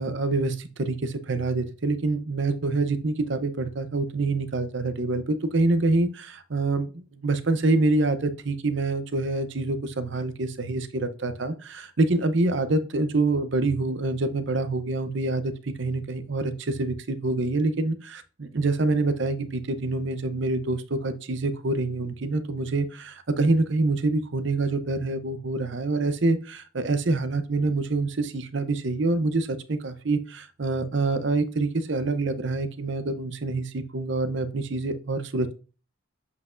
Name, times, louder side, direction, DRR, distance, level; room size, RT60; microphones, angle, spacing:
voice 1, 0.0-35.5, right 2 dB, 55° right, 11 dB, 0.7 m, -26 dB
7.6 x 5.9 x 2.5 m, 0.34 s
head